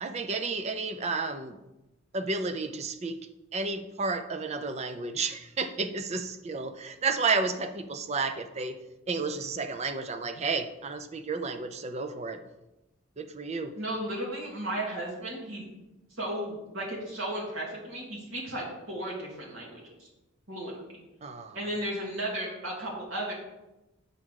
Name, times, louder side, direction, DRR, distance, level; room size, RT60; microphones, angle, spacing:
voice 1, 0.0-1.6 2.1-3.2 3.5-8.8 9.1-12.4 13.2-13.7 21.2-21.6, right 4 dB, 30° right, 9 dB, 0.5 m, -31 dB
voice 2, 13.7-15.6 16.2-20.1 20.5-20.7 21.5-23.3, right 1 dB, 75° right, -4 dB, 2.5 m, -34 dB
8.1 x 3.7 x 6.3 m, 0.99 s
head